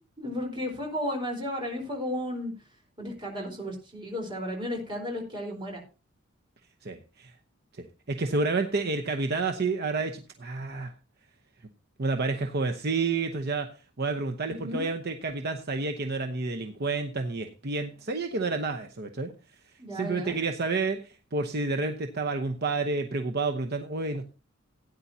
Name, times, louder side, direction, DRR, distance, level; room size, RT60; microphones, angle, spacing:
voice 1, 0.2-2.5 3.0-5.8 14.5-14.9 19.8-20.4, left 1 dB, 25° right, 1 dB, 4.1 m, -33 dB
voice 2, 6.8-7.3 7.8-10.9 12.0-13.7 14.0-19.3 19.9-24.2, right 3 dB, 55° right, 5 dB, 0.9 m, -30 dB
17.0 x 9.6 x 2.8 m, 0.33 s
head